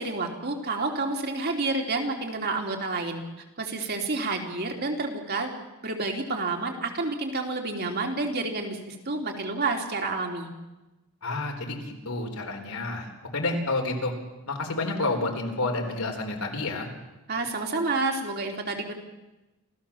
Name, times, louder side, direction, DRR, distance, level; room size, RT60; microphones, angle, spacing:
voice 1, 0.0-3.2 3.6-5.5 5.8-10.5 17.3-18.9, right 3 dB, 50° right, 2 dB, 3.3 m, -29 dB
voice 2, 11.2-14.1 14.5-16.9, left 2 dB, 80° left, 2 dB, 4.1 m, -29 dB
27.5 x 15.5 x 7.2 m, 1.1 s
head